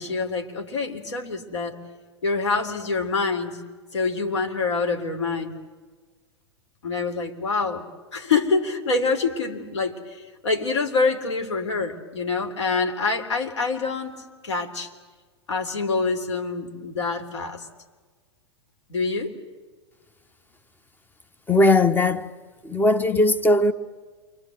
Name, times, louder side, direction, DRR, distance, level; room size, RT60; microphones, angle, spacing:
voice 1, 0.0-1.8 2.2-3.6 3.9-5.5 6.8-7.8 8.1-14.1 14.4-14.9 15.5-17.7 18.9-19.4, left 4 dB, 80° left, 3.6 m, -26 dB
voice 2, 21.5-22.3 22.7-23.7, left 2 dB, 15° left, 1.2 m, -18 dB
29.0 x 24.0 x 7.9 m
hypercardioid pair, 100°, 15 cm